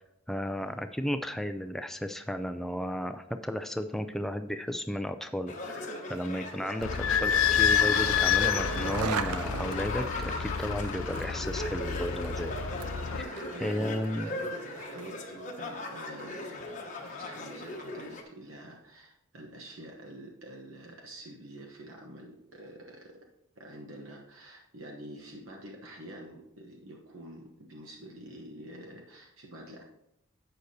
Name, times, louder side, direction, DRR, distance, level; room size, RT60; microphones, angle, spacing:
voice 1, 0.3-12.5 13.2-14.3, left 1 dB, ahead, 8 dB, 0.4 m, -34 dB
sound 1, 5.5-18.2, left 2 dB, 35° left, 1.0 m, -38 dB
Idling / Squeak, 6.8-13.2, left 8 dB, 60° left, 0.5 m, -29 dB
Skateboard, 6.9-15.2, right 5 dB, 85° right, 0.5 m, -40 dB
voice 2, 13.5-14.7 14.9-23.3 23.6-29.8, right 1 dB, 60° right, 0 dB, 1.0 m, -47 dB
11.5 x 7.9 x 2.8 m, 0.84 s
head